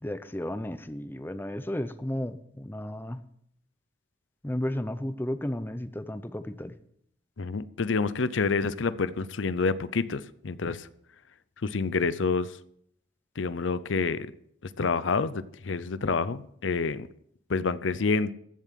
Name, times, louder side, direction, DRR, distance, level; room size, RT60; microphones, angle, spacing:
voice 1, 0.0-3.2 4.4-6.8, left 1 dB, 10° left, 12 dB, 0.6 m, -33 dB
voice 2, 7.4-10.9 11.6-12.6 13.4-14.3 14.6-17.1 17.5-18.3, left 4 dB, 85° left, 16 dB, 0.6 m, -28 dB
15.0 x 7.2 x 7.5 m, 0.70 s
head